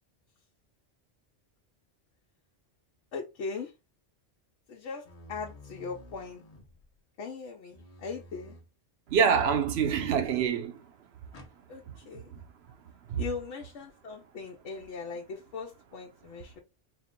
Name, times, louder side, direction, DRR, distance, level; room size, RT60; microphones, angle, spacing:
voice 1, 3.1-3.7 4.7-6.4 7.2-8.5 11.7-12.3 13.2-16.6, left 5 dB, 85° left, 1.0 m, -39 dB
sound 1, 5.0-7.0 7.7-8.7 9.5-10.5 11.3-11.6, left 1 dB, 35° left, 0.9 m, -51 dB
voice 2, 9.1-10.9 11.9-12.0 12.3-12.4 13.1-13.2, right 7 dB, 65° right, 0.9 m, -26 dB
4.3 x 2.1 x 3.6 m
omnidirectional pair, 1.2 m